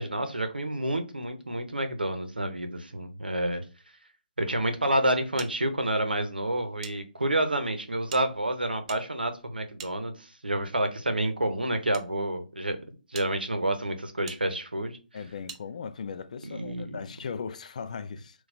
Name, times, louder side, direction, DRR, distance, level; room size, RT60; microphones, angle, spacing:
voice 1, 0.0-3.6 4.4-12.8 13.1-15.0 16.4-17.1, right 1 dB, 85° right, 0.7 m, -29 dB
smacking sticks, 5.4-7.0 7.2-7.3 8.0-10.5 11.3-12.1 12.6-12.7 13.1-13.3 14.3-14.4 15.5-15.6, right 7 dB, 35° right, 0.5 m, -46 dB
voice 2, 15.1-18.4, left 6 dB, 50° left, 0.3 m, -38 dB
4.0 x 2.3 x 2.6 m
figure-of-eight pair, 140°, 5 cm